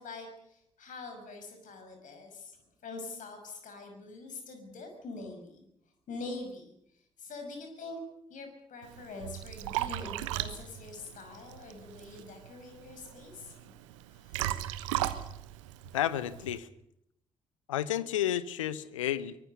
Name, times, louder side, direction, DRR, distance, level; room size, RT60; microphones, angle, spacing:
voice 1, 0.0-2.6 2.8-5.7 6.1-6.7 7.2-8.0 8.3-13.8 14.1-14.4, left 3 dB, 50° left, 5 dB, 6.0 m, -44 dB
Liquid, 8.8-16.6, right 14 dB, 70° right, 1.1 m, -37 dB
voice 2, 15.9-16.7 17.7-19.4, left 11 dB, 75° left, 17 dB, 0.9 m, -31 dB
24.0 x 21.5 x 6.9 m, 0.76 s
figure-of-eight pair, 40°, 16 cm